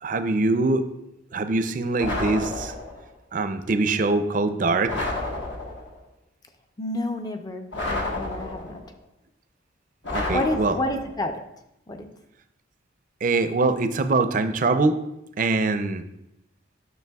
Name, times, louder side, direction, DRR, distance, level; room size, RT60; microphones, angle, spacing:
voice 1, 0.0-0.9 1.3-2.7 3.3-5.1 10.1-10.7 13.2-15.0 15.4-16.0, right 3 dB, 45° right, 9 dB, 0.4 m, -23 dB
sound 1, 2.0-3.1 4.9-6.0 7.7-8.9 10.0-11.2, left 2 dB, 65° left, 1.3 m, -30 dB
voice 2, 6.8-8.8 10.3-11.4 11.9-12.1, left 1 dB, 20° left, 6 dB, 0.5 m, -29 dB
9.2 x 6.2 x 2.3 m, 0.84 s
head